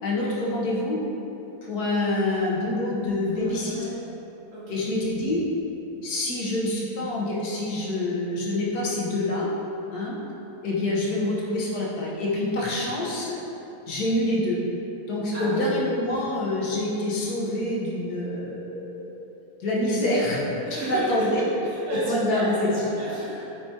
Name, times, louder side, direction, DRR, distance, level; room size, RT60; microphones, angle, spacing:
voice 1, 0.0-1.0 1.6-3.8 4.7-5.4 6.0-9.5 9.9-10.1 10.6-13.4 13.9-14.6 15.1-19.2 19.6-20.4 20.8-21.4 21.9-22.8, left 1 dB, 75° left, -5 dB, 1.6 m, -26 dB
voice 2, 3.3-4.0 4.5-4.8 15.3-15.7 20.6-23.4, right 1 dB, 80° right, -9 dB, 2.0 m, -33 dB
8.2 x 4.7 x 2.8 m, 3.0 s
omnidirectional pair, 1.7 m